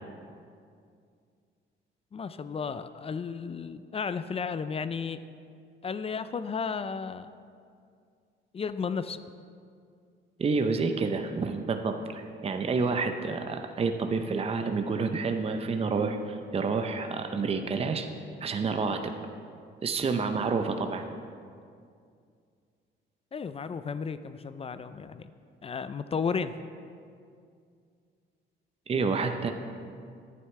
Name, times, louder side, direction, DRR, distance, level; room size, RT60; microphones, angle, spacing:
voice 1, 2.1-5.2 5.8-7.3 8.5-9.2 23.3-25.3 25.6-26.5, left 5 dB, 30° left, 12 dB, 0.4 m, -33 dB
voice 2, 10.4-18.1 18.4-19.1 19.8-21.1 28.9-29.5, right 4 dB, 30° right, 6 dB, 0.6 m, -29 dB
11.0 x 9.3 x 3.2 m, 2.3 s
cardioid pair, 90°, 20 cm